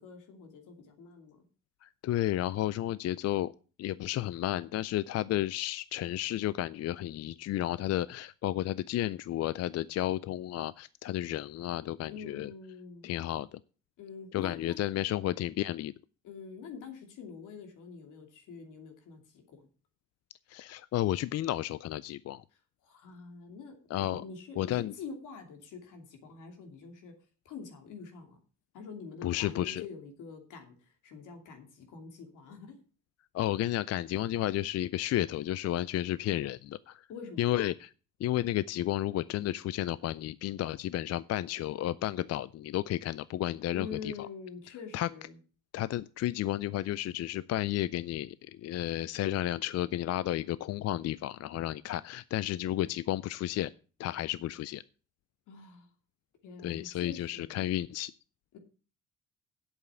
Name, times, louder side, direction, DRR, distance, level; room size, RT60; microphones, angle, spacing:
voice 1, 0.0-1.4 12.1-13.1 14.0-14.8 16.2-19.7 22.8-27.1 27.4-28.4 28.7-32.8 37.1-37.4 43.7-45.4 55.5-55.9 56.4-57.6, left 5 dB, 85° left, 4 dB, 2.7 m, -46 dB
voice 2, 1.8-3.5 3.8-12.5 13.0-13.6 14.3-15.9 20.5-22.4 23.9-24.2 24.6-24.9 29.2-29.8 33.3-37.1 37.4-37.9 38.2-44.1 44.9-45.1 45.7-53.7 54.0-54.8 56.6-58.1, left 13 dB, 55° left, 18 dB, 0.4 m, -32 dB
8.3 x 7.3 x 6.9 m, 0.38 s
cardioid pair, 90°, 30 cm